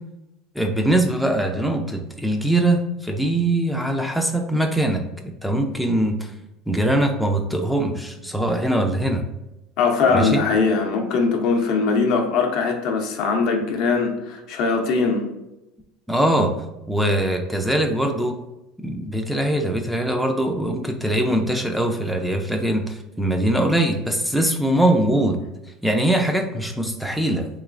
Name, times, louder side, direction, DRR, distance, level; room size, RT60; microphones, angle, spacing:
voice 1, 0.6-6.3 6.7-9.2 10.1-10.4 16.1-16.5 16.9-18.4 18.8-25.4 25.8-27.5, right 1 dB, ahead, 3 dB, 0.3 m, -22 dB
voice 2, 9.8-15.2, left 4 dB, 60° left, 3 dB, 0.6 m, -21 dB
3.1 x 3.0 x 2.4 m, 0.94 s
supercardioid pair, 115°, 0 cm